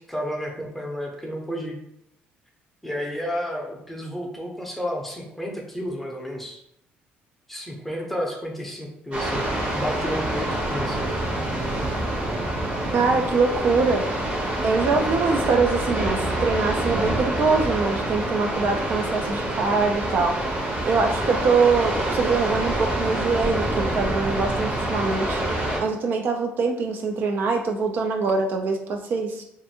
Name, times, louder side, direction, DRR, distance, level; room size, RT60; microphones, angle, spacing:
voice 1, 0.1-1.8 2.8-6.6 7.5-11.0, equal, 5° left, 0 dB, 0.6 m, -31 dB
sound 1, 9.1-25.8, right 1 dB, 35° right, 0.8 m, -26 dB
voice 2, 12.9-14.1 14.6-20.3 20.9-25.4 25.8-29.4, right 4 dB, 50° right, 3 dB, 0.3 m, -23 dB
2.5 x 2.5 x 2.6 m, 0.76 s
cardioid pair, 100°, 4 cm